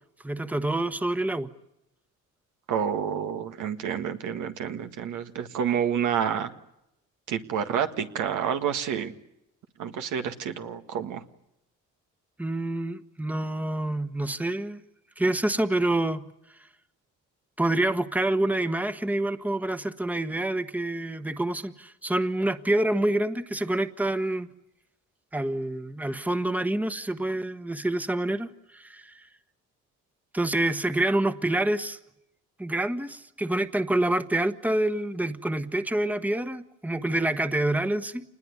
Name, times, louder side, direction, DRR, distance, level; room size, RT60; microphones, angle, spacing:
voice 1, 0.2-1.5 12.4-14.8 15.2-16.2 17.6-24.5 25.3-29.3 30.3-32.0 32.6-38.2, right 1 dB, 5° right, 11 dB, 1.2 m, -27 dB
voice 2, 2.7-6.5 7.3-9.1 9.8-11.2, right 8 dB, 80° right, 7 dB, 1.8 m, -29 dB
27.0 x 20.5 x 9.8 m, 0.86 s
cardioid pair, 90°, 30 cm